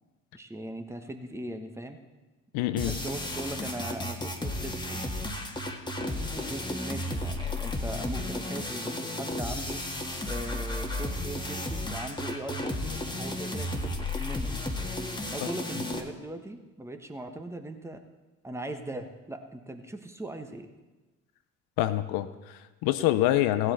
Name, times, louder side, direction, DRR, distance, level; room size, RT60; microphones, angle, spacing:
voice 1, 0.3-2.0 2.8-5.1 6.0-9.8 10.3-13.9 14.2-14.5 15.3-18.0 18.4-20.7, right 1 dB, 5° right, 6 dB, 1.3 m, -39 dB
voice 2, 2.5-3.0 21.8-23.7, left 14 dB, 75° left, 12 dB, 0.7 m, -26 dB
sound 1, 2.8-16.0, left 1 dB, 10° left, 1.7 m, -33 dB
16.0 x 7.8 x 4.4 m, 1.2 s
hypercardioid pair, 55°, 36 cm